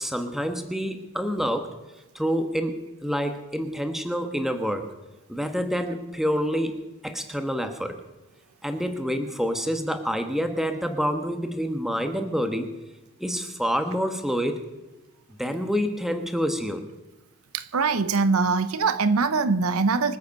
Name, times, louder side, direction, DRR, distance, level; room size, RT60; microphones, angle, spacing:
voice 1, 0.0-1.7 2.1-2.7 3.0-4.8 5.3-6.8 7.0-8.0 8.6-12.7 13.2-14.6 15.4-16.9, equal, ahead, 1.2 m, -27 dB
voice 2, 17.5-20.2, right 4 dB, 80° right, 0.7 m, -23 dB
24.5 x 8.3 x 5.3 m
head